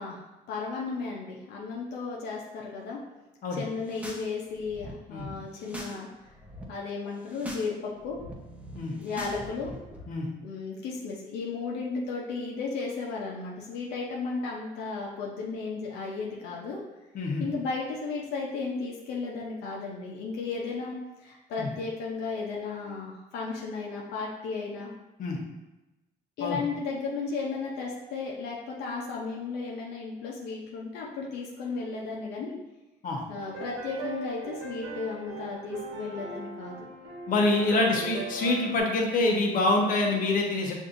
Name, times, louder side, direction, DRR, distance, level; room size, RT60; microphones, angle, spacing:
voice 1, 0.0-3.0 3.5-6.4 6.7-8.2 9.0-9.7 10.4-16.8 17.4-24.9 26.4-32.6 33.3-36.9 37.7-38.0, left 4 dB, 80° left, -3 dB, 0.7 m, -34 dB
sound 1, 3.7-4.3 4.5-6.0 6.3-6.6 7.1-7.7 8.0-10.0, equal, 10° right, 0.7 m, -42 dB
voice 2, 17.1-17.5 21.6-21.7 25.2-25.4 26.4-26.6 33.0-33.2 37.3-40.7, left 2 dB, 55° left, 0 dB, 0.9 m, -26 dB
sound 2, 33.3-38.8, right 3 dB, 85° right, 1.3 m, -39 dB
6.4 x 2.6 x 2.6 m, 1.0 s
cardioid pair, 110°, 17 cm